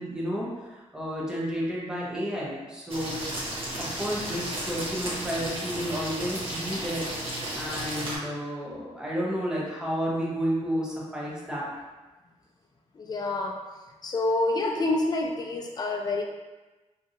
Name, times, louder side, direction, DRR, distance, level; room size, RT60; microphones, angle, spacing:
voice 1, 0.0-3.2 3.8-11.7, equal, 5° right, -6 dB, 0.8 m, -31 dB
sound 1, 2.9-8.2, right 1 dB, 50° right, 0.9 m, -34 dB
voice 2, 12.9-13.6 14.0-16.2, left 2 dB, 35° left, 1 dB, 0.4 m, -27 dB
2.9 x 2.7 x 2.5 m, 1.1 s
cardioid pair, 90°, 12 cm